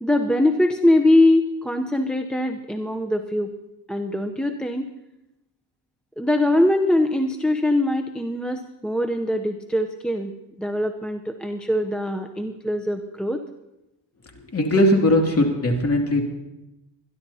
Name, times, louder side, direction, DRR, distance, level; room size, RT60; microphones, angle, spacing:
voice 1, 0.0-3.5 3.9-4.9 6.2-10.3 10.6-13.4, left 1 dB, ahead, 6 dB, 0.7 m, -22 dB
voice 2, 14.3-16.2, left 1 dB, 30° left, 2 dB, 2.5 m, -19 dB
25.0 x 11.5 x 2.8 m, 0.93 s
cardioid pair, 95°, 46 cm